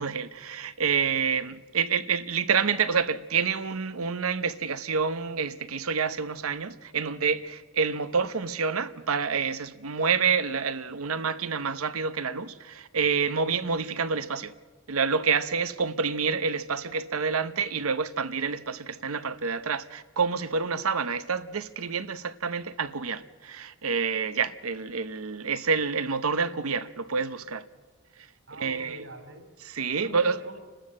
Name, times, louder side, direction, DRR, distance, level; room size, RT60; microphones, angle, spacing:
voice 1, 0.0-14.5 14.9-27.6 28.6-29.0 29.6-30.4, right 5 dB, 90° right, 0.9 m, -28 dB
voice 2, 28.5-29.5 29.9-30.6, equal, 65° right, 4.4 m, -44 dB
29.5 x 13.0 x 7.7 m
head